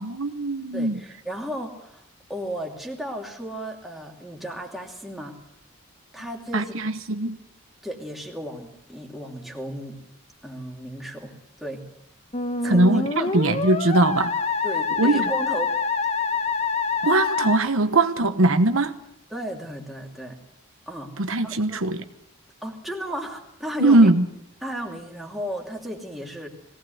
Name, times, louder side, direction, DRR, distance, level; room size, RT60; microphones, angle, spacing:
voice 1, 0.0-1.0 6.5-7.4 12.6-14.3 15.0-15.2 17.0-18.9 21.2-22.0 23.8-24.3, right 2 dB, 70° right, 1.1 m, -20 dB
voice 2, 0.7-5.4 6.1-6.7 7.8-10.0 10.4-11.9 12.6-12.9 13.2-13.3 14.6-15.8 19.3-20.4 20.9-21.2 21.4-21.8 22.6-24.1 24.6-26.5, equal, ahead, 2.7 m, -34 dB
Musical instrument, 12.3-17.6, left 4 dB, 30° left, 1.2 m, -26 dB
21.5 x 17.5 x 7.9 m
head